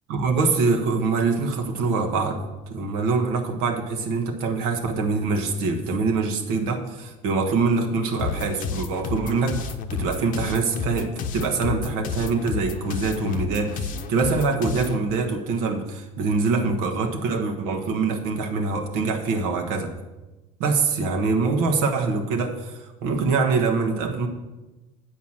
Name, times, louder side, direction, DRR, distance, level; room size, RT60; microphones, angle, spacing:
voice 1, 0.1-19.9 20.6-24.3, right 4 dB, 75° right, 3 dB, 1.4 m, -24 dB
sound 1, 8.2-15.0, left 6 dB, 50° left, 0.8 m, -31 dB
8.2 x 4.7 x 7.4 m, 1.1 s
supercardioid pair, 95°, 17 cm